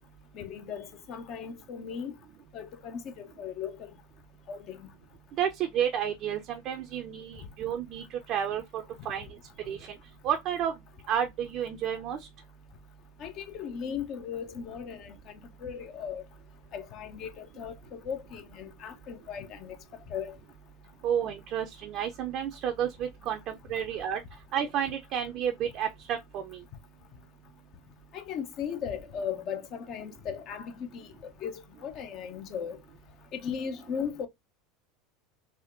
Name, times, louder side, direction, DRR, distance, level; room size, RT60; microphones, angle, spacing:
voice 1, 0.3-2.2 2.5-3.9 4.5-4.9 13.2-15.3 15.6-16.2 16.7-19.8 20.1-20.4 28.1-31.1 31.4-32.8 33.3-34.3, left 7 dB, 50° left, 0.6 m, -37 dB
voice 2, 5.4-9.3 9.7-9.9 10.2-10.7 11.1-12.3 21.0-24.2 24.5-26.6, right 9 dB, 50° right, 0.4 m, -31 dB
3.5 x 2.1 x 2.4 m
hypercardioid pair, 85°, 0 cm